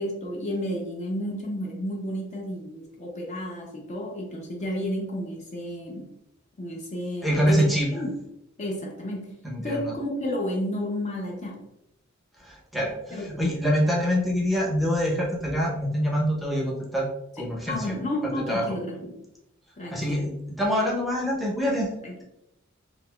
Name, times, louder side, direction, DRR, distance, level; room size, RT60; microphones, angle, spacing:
voice 1, 0.0-6.1 6.6-8.2 8.6-9.4 9.6-11.7 13.1-13.3 17.4-19.2 19.8-20.3 21.7-22.2, equal, 35° left, 0 dB, 0.6 m, -32 dB
voice 2, 7.2-7.9 9.4-9.9 12.4-17.1 17.4-17.8 18.5-18.6 19.9-21.9, equal, ahead, -3 dB, 0.7 m, -25 dB
3.9 x 2.8 x 2.3 m, 0.83 s
head